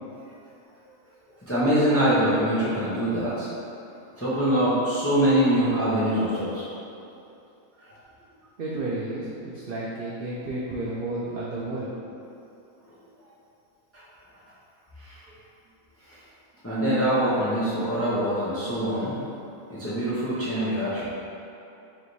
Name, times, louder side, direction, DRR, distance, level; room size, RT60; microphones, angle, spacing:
voice 1, 1.5-3.5 4.2-6.7 13.9-14.0 15.0-15.2 16.6-19.2 19.7-21.1, equal, 15° left, -10 dB, 0.4 m, -24 dB
voice 2, 8.6-11.9, right 2 dB, 75° right, -6 dB, 0.5 m, -32 dB
4.5 x 3.2 x 2.7 m, 2.7 s
omnidirectional pair, 1.5 m